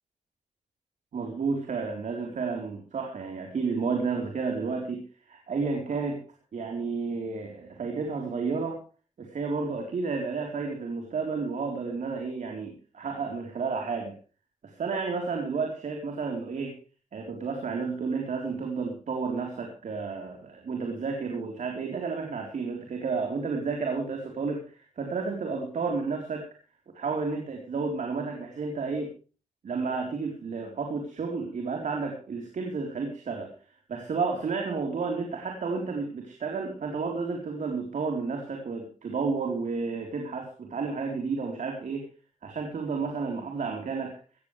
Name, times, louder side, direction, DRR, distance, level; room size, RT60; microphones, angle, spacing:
voice 1, 1.1-6.2 6.5-8.8 9.2-14.2 14.6-16.7 17.1-26.5 26.9-29.1 29.6-33.5 33.9-42.1 42.4-44.2, right 4 dB, 75° right, 2 dB, 3.9 m, -31 dB
18.5 x 15.0 x 3.3 m, 0.36 s
wide cardioid pair, 150°, 13 cm